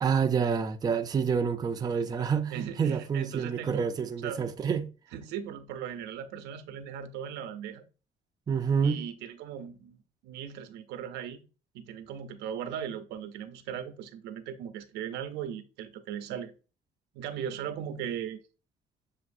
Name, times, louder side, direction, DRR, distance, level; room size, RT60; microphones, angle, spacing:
voice 1, 0.0-4.9 8.5-9.0, right 6 dB, 25° right, 0.4 m, -28 dB
voice 2, 2.5-3.9 4.2-4.4 5.1-7.8 8.8-10.0 10.2-11.4 11.7-16.5 17.1-18.4, right 9 dB, 85° right, 0.6 m, -38 dB
7.1 x 2.5 x 2.5 m
cardioid pair, 110°, 17 cm